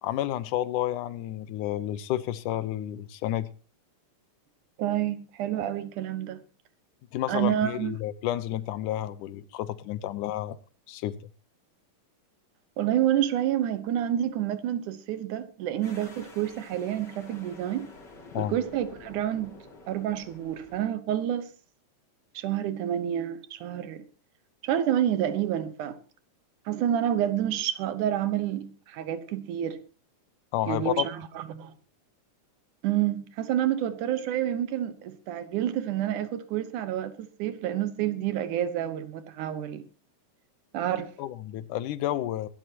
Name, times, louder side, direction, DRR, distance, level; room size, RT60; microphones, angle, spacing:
voice 1, 0.0-3.5 7.1-10.6 10.9-11.1 18.3-18.5 30.5-31.1 41.2-42.5, left 13 dB, 85° left, 2.3 m, -30 dB
voice 2, 4.8-6.4 7.3-8.0 12.8-17.9 18.4-19.6 19.9-21.5 22.3-24.1 24.6-26.0 26.7-29.8 30.7-31.7 32.8-39.9 40.7-41.1, right 11 dB, 80° right, 2.5 m, -28 dB
sound 1, 15.8-20.9, left 2 dB, 35° left, 3.6 m, -49 dB
23.0 x 12.0 x 2.9 m
omnidirectional pair, 3.5 m